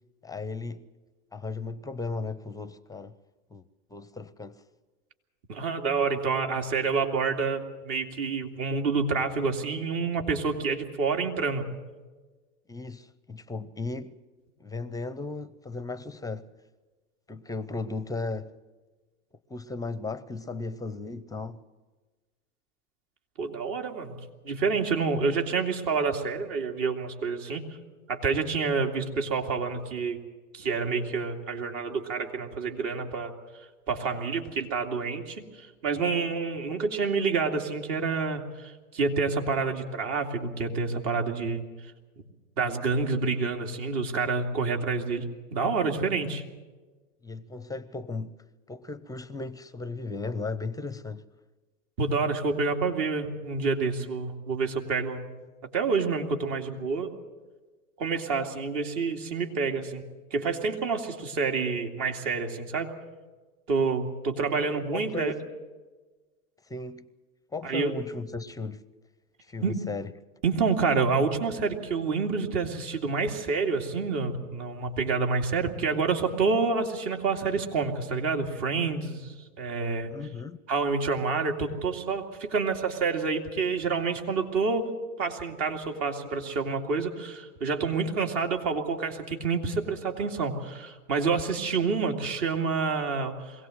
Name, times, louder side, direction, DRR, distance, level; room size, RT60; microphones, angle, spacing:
voice 1, 0.2-0.9 1.3-3.1 3.5-3.6 3.9-4.6 12.7-14.2 14.6-16.5 17.3-18.5 19.5-21.6 45.1-45.2 47.2-48.4 48.7-51.3 64.6-65.3 66.7-67.1 67.5-68.8 69.5-70.1 80.1-80.6, left 3 dB, 10° left, 0.6 m, -36 dB
voice 2, 5.5-11.6 23.4-24.2 24.4-27.6 28.1-30.2 30.5-33.3 33.9-41.6 42.6-45.2 45.5-46.4 52.0-55.3 55.7-57.1 58.0-60.0 60.3-62.9 63.7-65.3 67.6-67.9 69.6-69.7 70.4-80.1 80.7-84.9 85.2-93.7, right 4 dB, 55° right, 2.6 m, -28 dB
22.5 x 17.0 x 7.9 m
hypercardioid pair, 105°, 43 cm